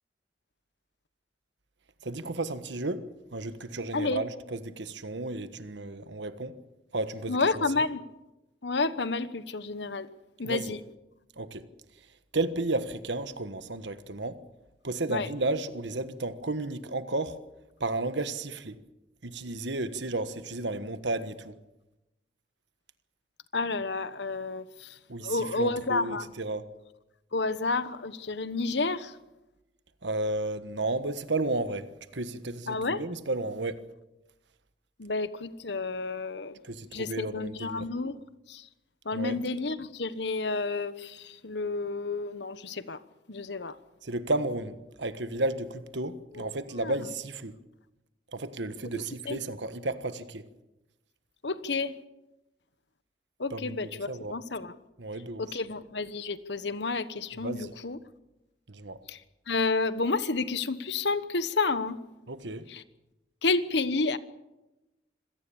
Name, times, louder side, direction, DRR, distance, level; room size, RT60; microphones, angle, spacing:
voice 1, 2.0-3.0 3.3-6.5 6.9-7.6 10.4-10.7 11.4-11.6 12.3-14.4 14.8-17.4 17.8-18.7 19.2-21.5 25.1-26.6 30.0-33.8 36.6-37.9 39.1-39.4 44.0-47.5 48.3-50.4 53.5-54.3 55.0-55.5 57.4-57.7 58.7-59.0 62.3-62.7, right 2 dB, 75° right, 1.4 m, -33 dB
voice 2, 3.9-4.2 7.3-8.0 8.6-10.1 10.4-10.8 15.1-15.3 23.5-24.9 25.2-26.3 27.3-29.1 32.7-33.0 35.0-36.6 36.9-38.2 38.5-38.6 39.0-43.0 43.3-43.7 46.3-46.5 46.8-46.9 48.9-49.4 51.4-51.9 53.4-54.7 55.4-58.0 59.1-59.2 59.5-62.0 62.7-62.8 63.4-64.2, left 3 dB, 70° left, 1.1 m, -30 dB
26.0 x 17.5 x 7.1 m
head